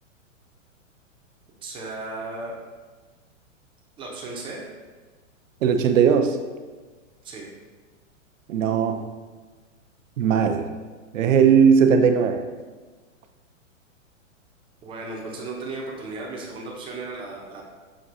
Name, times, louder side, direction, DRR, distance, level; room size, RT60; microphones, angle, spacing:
voice 1, 1.6-2.6 4.0-4.7 7.2-7.5 14.8-17.6, right 3 dB, 15° right, -2 dB, 0.6 m, -35 dB
voice 2, 5.6-6.4 8.5-9.1 10.2-10.7 11.1-12.4, right 7 dB, 80° right, 7 dB, 0.5 m, -18 dB
6.1 x 2.6 x 2.6 m, 1.3 s
hypercardioid pair, 130°, 39 cm